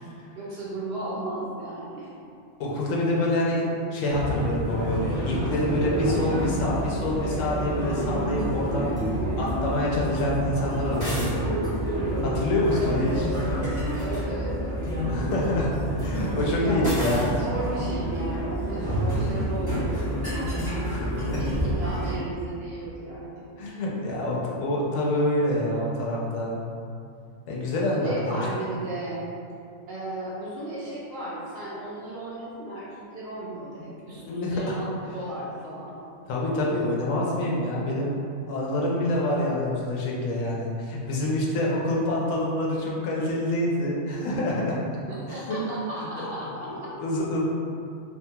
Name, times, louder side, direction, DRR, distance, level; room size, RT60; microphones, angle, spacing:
voice 1, 0.4-2.1 12.8-14.8 16.5-20.6 21.4-23.5 28.0-29.3 29.9-35.9 45.0-46.9, right 2 dB, 60° right, -7 dB, 0.7 m, -35 dB
voice 2, 2.6-3.6 3.9-8.9 9.4-11.3 12.2-13.2 15.1-15.7 16.0-17.3 20.9-21.0 21.3-21.4 23.6-26.6 27.5-28.5 34.1-34.8 36.3-38.1 38.5-44.8 45.5-45.6 46.2-46.3 46.6-47.4, left 1 dB, 80° left, -4 dB, 1.0 m, -26 dB
sound 1, 4.1-22.1, equal, 25° right, 0.6 m, -28 dB
sound 2, 10.9-11.3 13.8-14.3 16.8-17.3, equal, 20° left, 0.7 m, -34 dB
2.8 x 2.3 x 2.7 m, 2.5 s
omnidirectional pair, 1.4 m